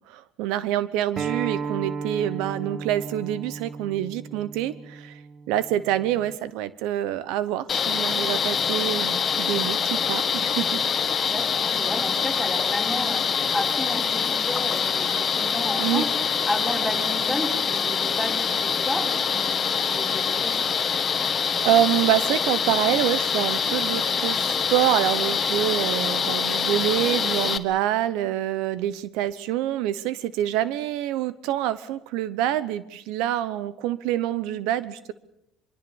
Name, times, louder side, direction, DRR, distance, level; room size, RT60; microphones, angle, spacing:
voice 1, 0.1-5.2 5.5-10.8 15.7-16.1 21.6-35.1, right 12 dB, 80° right, 16 dB, 0.9 m, -26 dB
Acoustic guitar, 1.2-6.4, right 5 dB, 30° right, 1.1 m, -35 dB
sound 1, 7.7-27.6, left 6 dB, 35° left, 1.6 m, -25 dB
voice 2, 11.3-20.6, left 1 dB, ahead, 1 dB, 5.4 m, -32 dB
24.0 x 23.5 x 7.2 m, 0.81 s
cardioid pair, 115°, 0 cm